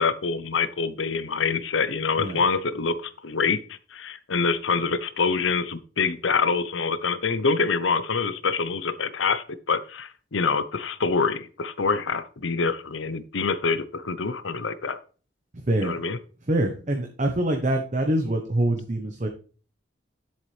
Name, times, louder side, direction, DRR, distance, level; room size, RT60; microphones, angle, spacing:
voice 1, 0.0-15.0 15.8-16.2, left 5 dB, 90° left, 13 dB, 0.8 m, -26 dB
voice 2, 15.5-16.0 16.5-19.3, right 1 dB, 40° right, 4 dB, 0.9 m, -25 dB
10.5 x 7.4 x 3.3 m, 0.40 s
head